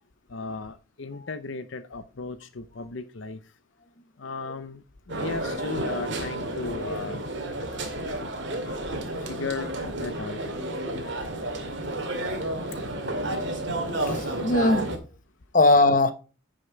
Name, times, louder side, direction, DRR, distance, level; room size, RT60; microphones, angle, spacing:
voice 1, 0.3-3.4 4.2-4.8 5.1-7.2 9.3-9.7 10.0-10.4, left 4 dB, 65° left, 0.7 m, -35 dB
sound 1, 5.1-15.0, right 1 dB, 60° right, 2.2 m, -31 dB
voice 2, 14.0-14.9 15.5-16.1, left 2 dB, 40° left, 1.1 m, -21 dB
9.5 x 6.6 x 4.6 m
head